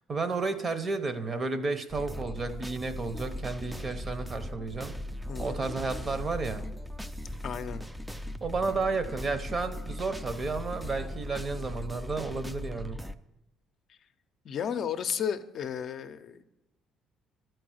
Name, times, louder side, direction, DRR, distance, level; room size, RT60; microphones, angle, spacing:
voice 1, 0.1-4.9 5.4-6.7 8.4-13.0, right 3 dB, 35° right, 10 dB, 0.9 m, -32 dB
sound 1, 1.9-13.1, equal, 5° right, 0.4 m, -38 dB
voice 2, 5.3-5.6 7.4-7.8 13.9-14.0 14.4-16.4, left 8 dB, 55° left, 9 dB, 0.5 m, -33 dB
11.5 x 4.6 x 6.3 m, 0.94 s
cardioid pair, 90°, 0 cm